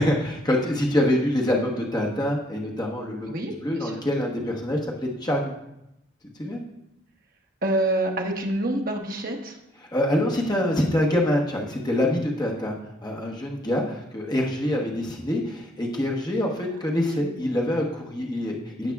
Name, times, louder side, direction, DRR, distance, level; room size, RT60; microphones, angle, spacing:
voice 1, 0.0-4.8 5.2-5.6 6.4-6.6 9.9-18.9, left 1 dB, 20° left, -2 dB, 1.1 m, -25 dB
voice 2, 3.3-4.0 7.6-9.6, right 1 dB, 45° right, 1 dB, 1.0 m, -27 dB
15.5 x 5.8 x 2.3 m, 0.85 s
head